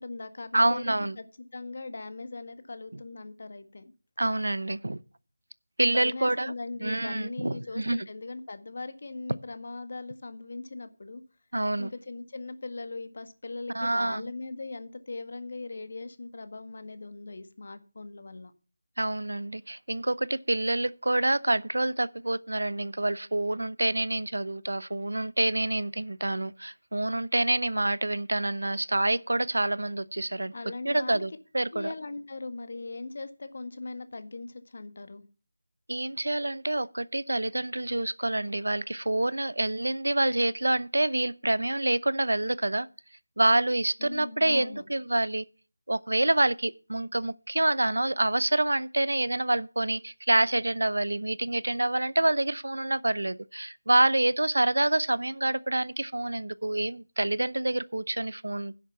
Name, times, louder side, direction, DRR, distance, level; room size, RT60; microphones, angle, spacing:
voice 1, 0.0-3.9 5.9-11.2 11.8-18.5 30.5-31.2 31.7-35.2 44.0-44.8, left 3 dB, 50° left, 1.6 m, -39 dB
voice 2, 0.5-1.2 4.2-5.0 5.8-6.5 6.8-8.1 11.5-11.9 13.7-14.3 19.0-30.5 30.8-31.9 35.9-42.9 43.4-45.4 45.9-58.7, right 1 dB, 90° right, 0.8 m, -27 dB
10.5 x 7.4 x 7.0 m
figure-of-eight pair, 170°, 0 cm